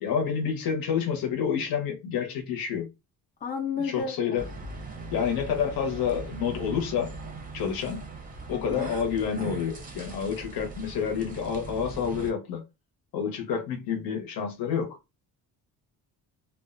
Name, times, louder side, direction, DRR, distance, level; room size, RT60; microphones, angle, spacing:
voice 1, 0.0-2.9 3.8-4.5 5.1-7.1 7.5-8.1 8.5-12.6 13.1-15.0, left 7 dB, 65° left, 0.9 m, -29 dB
voice 2, 3.4-4.2 8.5-8.9, left 5 dB, 25° left, 0.5 m, -32 dB
sound 1, 4.4-12.3, right 3 dB, 25° right, 0.5 m, -40 dB
2.4 x 2.1 x 2.4 m
cardioid pair, 140°, 37 cm